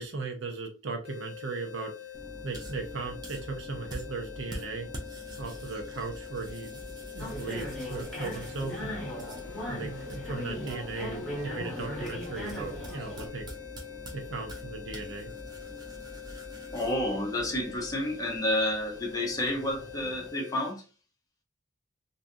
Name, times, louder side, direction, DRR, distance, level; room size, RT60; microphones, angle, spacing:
voice 1, 0.0-1.9 2.4-4.9 5.4-9.1 9.7-13.5 14.1-15.3, right 4 dB, 65° right, 0.6 m, -37 dB
sound 1, 1.0-20.8, left 11 dB, 70° left, 0.7 m, -45 dB
sound 2, 2.1-20.3, right 1 dB, 20° right, 0.5 m, -45 dB
sound 3, 7.2-13.3, equal, 5° left, 1.0 m, -38 dB
voice 2, 16.7-20.8, left 1 dB, 20° left, 0.6 m, -30 dB
2.6 x 2.3 x 2.5 m
head